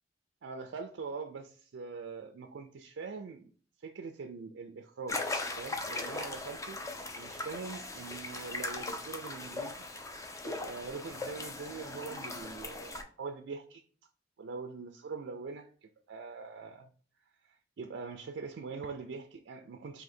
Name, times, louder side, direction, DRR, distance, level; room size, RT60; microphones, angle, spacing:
voice 1, 0.4-3.5 3.8-5.2 5.6-6.8 7.2-9.8 10.4-13.8 14.4-16.9 17.4-20.0, right 4 dB, 85° right, 0.4 m, -43 dB
sound 1, 5.1-13.0, left 2 dB, 15° left, 0.5 m, -39 dB
3.7 x 2.7 x 4.2 m
head